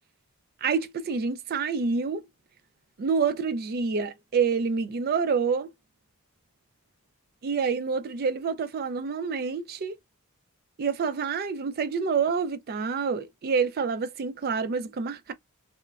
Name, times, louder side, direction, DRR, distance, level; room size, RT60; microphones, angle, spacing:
voice 1, 0.6-2.2 3.0-5.7 7.4-10.0 10.8-15.3, right 5 dB, 45° right, 0.3 m, -27 dB
3.0 x 2.2 x 2.2 m
head